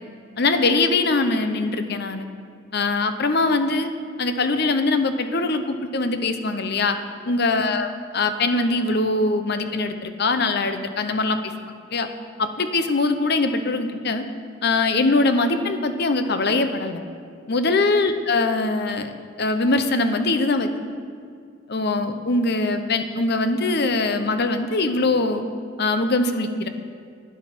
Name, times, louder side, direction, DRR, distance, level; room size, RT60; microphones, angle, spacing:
voice 1, 0.4-2.2 2.7-3.9 4.2-7.0 7.3-7.9 8.1-11.5 11.9-12.1 12.4-14.2 14.6-17.0 17.5-19.1 19.4-20.7 21.7-25.4 25.8-26.7, left 3 dB, 55° left, 8 dB, 0.8 m, -22 dB
11.0 x 9.5 x 6.1 m, 2.2 s
head